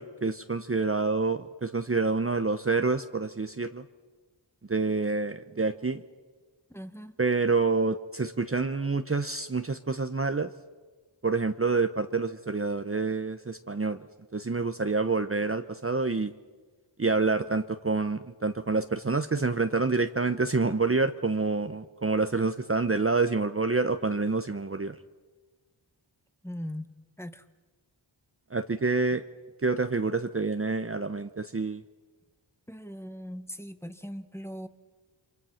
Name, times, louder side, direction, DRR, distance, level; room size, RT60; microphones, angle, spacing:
voice 1, 0.0-3.8 4.7-6.0 7.2-10.5 11.2-14.0 14.3-16.3 17.0-25.0 28.5-29.2 29.6-31.8, right 3 dB, 30° right, 8 dB, 1.0 m, -27 dB
voice 2, 6.7-7.2 26.4-27.4 32.7-34.7, equal, 5° left, 9 dB, 1.5 m, -40 dB
29.0 x 24.5 x 5.9 m, 1.4 s
cardioid pair, 45°, 47 cm